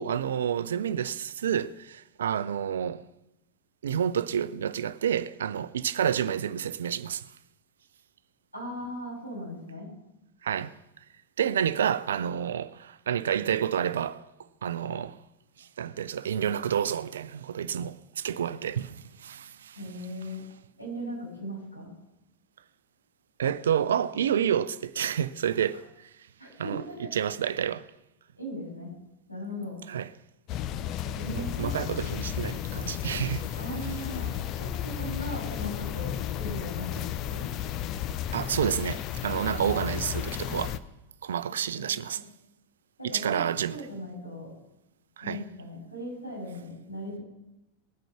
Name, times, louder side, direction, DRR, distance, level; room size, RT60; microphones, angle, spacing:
voice 1, 0.0-3.0 3.8-7.2 10.4-10.7 11.4-14.3 14.6-15.2 15.6-19.8 23.4-26.1 26.6-27.9 29.9-30.1 31.3-33.5 38.3-40.8 41.2-42.2 43.0-43.8 45.2-45.4, right 9 dB, 65° right, 0.5 m, -29 dB
voice 2, 8.5-9.9 19.7-20.4 20.8-21.9 26.4-27.1 28.4-28.9 29.3-29.8 31.1-31.8 33.6-34.3 34.6-37.4 41.5-41.8 43.0-43.4 43.7-44.5 45.2-47.2, equal, 90° left, 6.9 m, -38 dB
sound 1, 30.5-40.8, left 10 dB, 35° left, 0.7 m, -33 dB
20.0 x 9.1 x 5.9 m
figure-of-eight pair, 90°, 0 cm